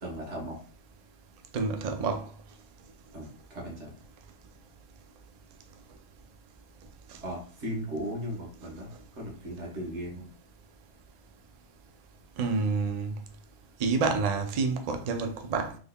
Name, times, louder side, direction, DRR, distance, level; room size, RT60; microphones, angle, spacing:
voice 1, 0.0-0.6 3.1-3.9 7.2-8.9 9.1-10.3, equal, 60° right, 1.5 m, -37 dB
voice 2, 1.5-2.3 12.4-13.1 13.8-15.8, right 4 dB, 85° right, 0.3 m, -28 dB
3.6 x 3.3 x 2.2 m
omnidirectional pair, 1.4 m